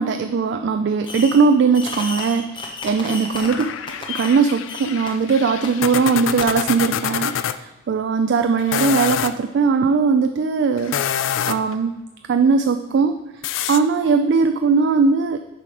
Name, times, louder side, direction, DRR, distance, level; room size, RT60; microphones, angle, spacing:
voice 1, 0.0-3.7 4.1-10.9 11.5-11.9 12.3-13.2 13.7-15.4, right 5 dB, 55° right, 7 dB, 0.3 m, -19 dB
Fireworks, 1.0-1.5 1.7-4.4 4.7-5.1 5.6-5.7 6.4-6.5, left 3 dB, 25° left, 0.6 m, -33 dB
sound 1, 3.4-7.6 8.6-9.4 10.8-11.8 13.4-13.8, left 9 dB, 65° left, 0.3 m, -26 dB
6.9 x 4.9 x 4.8 m, 1.1 s
head